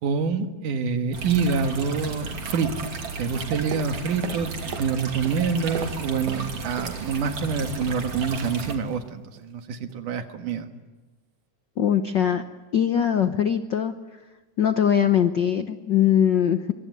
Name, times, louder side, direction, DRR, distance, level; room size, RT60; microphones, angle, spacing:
voice 1, 0.0-2.9 3.2-10.7, right 5 dB, 90° right, 6 dB, 3.3 m, -26 dB
sound 1, 1.1-8.8, right 4 dB, 50° right, 3.7 m, -34 dB
sound 2, 3.7-5.0 5.2-7.0 7.3-8.1 8.3-8.6 8.9-9.1 9.4-9.6 9.9-10.0, right 8 dB, 70° right, 2.6 m, -39 dB
voice 2, 11.8-12.4 12.7-13.9 14.6-16.7, left 9 dB, 85° left, 9 dB, 0.9 m, -21 dB
25.0 x 23.5 x 9.4 m, 1.2 s
omnidirectional pair, 3.5 m